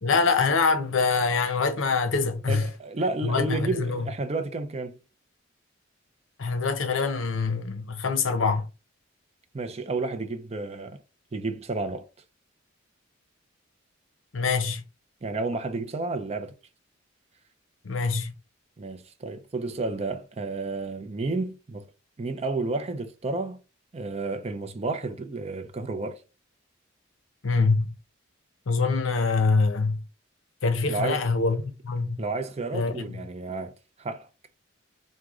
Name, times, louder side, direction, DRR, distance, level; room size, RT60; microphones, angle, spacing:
voice 1, 0.0-2.6 3.2-4.1 6.4-8.7 14.3-14.8 17.8-18.3 27.4-27.9 28.7-30.0 30.6-32.2 32.7-33.2, left 4 dB, 75° left, 0.7 m, -25 dB
voice 2, 2.5-5.0 9.5-11.0 11.3-12.1 15.2-16.5 18.8-21.8 22.2-23.6 23.9-26.2 30.9-31.3 32.2-33.7 34.0-34.3, right 3 dB, 30° right, 0.4 m, -31 dB
4.6 x 2.1 x 3.6 m
head